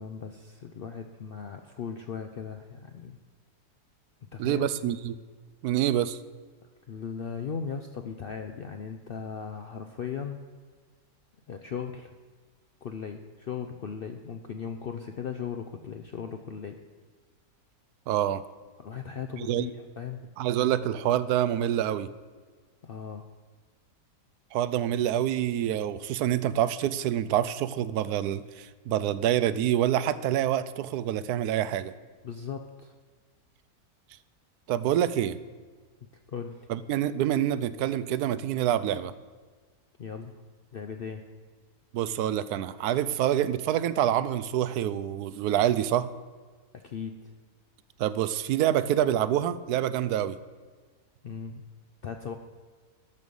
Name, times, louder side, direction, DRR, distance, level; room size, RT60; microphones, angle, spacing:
voice 1, 0.0-3.2 4.3-4.7 6.9-10.4 11.5-12.1 12.8-16.8 18.8-19.7 20.0-20.2 22.8-23.3 32.2-32.9 36.3-36.7 40.0-40.4 40.7-41.2 46.7-47.3 51.2-51.6 52.0-52.4, left 6 dB, 65° left, 6 dB, 0.5 m, -37 dB
voice 2, 4.4-5.2 5.6-6.2 18.1-18.4 19.4-19.7 20.4-22.1 24.5-31.9 34.7-35.4 36.7-39.1 41.9-46.1 48.0-50.4, right 11 dB, 85° right, 15 dB, 1.1 m, -26 dB
12.5 x 6.5 x 5.3 m, 1.5 s
omnidirectional pair, 1.6 m